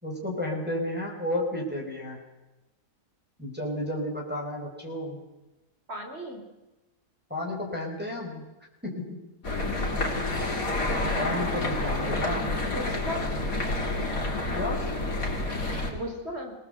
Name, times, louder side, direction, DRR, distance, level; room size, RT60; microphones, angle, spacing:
voice 1, 0.0-2.2 3.4-5.2 7.3-8.5 8.8-9.3 11.2-12.5 14.5-14.9, left 1 dB, 5° right, -3 dB, 4.9 m, -32 dB
voice 2, 5.9-6.4 11.6-12.2 12.7-13.3 15.9-16.5, equal, 40° right, 3 dB, 4.3 m, -36 dB
sound 1, 9.4-15.9, left 2 dB, 55° left, 4.1 m, -29 dB
24.0 x 19.0 x 8.0 m, 1.1 s
omnidirectional pair, 1.7 m